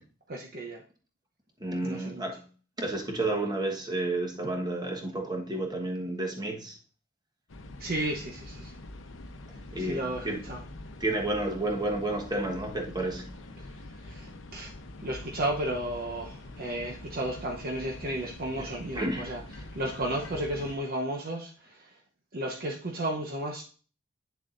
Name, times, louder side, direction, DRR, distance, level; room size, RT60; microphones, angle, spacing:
voice 1, 0.3-0.8 1.8-2.2 7.8-8.7 9.8-10.6 14.0-14.7 15.0-19.4 19.7-21.9 22.3-23.6, right 1 dB, 50° right, 0 dB, 0.9 m, -33 dB
voice 2, 1.6-2.4 2.8-6.8 9.7-10.5 11.0-13.3 18.6-18.7 18.9-19.3, right 2 dB, 20° right, 1 dB, 1.3 m, -31 dB
sound 1, 7.5-20.8, left 1 dB, 80° left, 0.8 m, -45 dB
8.4 x 6.8 x 2.6 m, 0.38 s
head